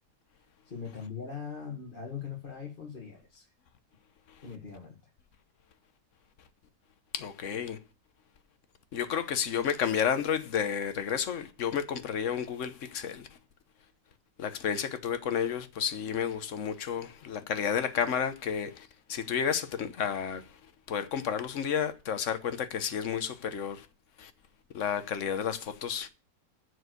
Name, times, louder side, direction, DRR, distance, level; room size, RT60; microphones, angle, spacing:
voice 1, 0.6-3.5 4.4-5.0, left 6 dB, 30° left, 1.9 m, -40 dB
voice 2, 7.1-7.8 8.9-13.3 14.4-20.6 20.9-23.9 24.2-24.3 24.7-26.1, left 8 dB, 50° left, 1.2 m, -31 dB
7.5 x 6.4 x 7.8 m
omnidirectional pair, 1.9 m